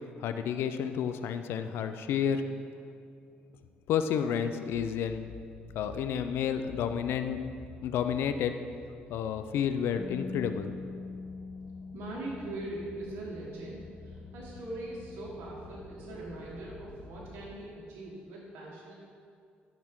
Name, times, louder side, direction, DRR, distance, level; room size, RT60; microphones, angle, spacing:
voice 1, 0.2-2.4 3.9-5.3 5.7-7.4 7.8-8.6 9.1-10.7, left 8 dB, 75° left, 9 dB, 0.4 m, -30 dB
sound 1, 4.7-17.5, left 3 dB, 50° left, 1.3 m, -51 dB
Bass guitar, 10.0-16.2, left 4 dB, 15° left, 1.1 m, -45 dB
voice 2, 11.9-18.9, right 2 dB, 75° right, -4 dB, 1.5 m, -41 dB
11.0 x 5.9 x 3.7 m, 2.3 s
cardioid pair, 80°, 4 cm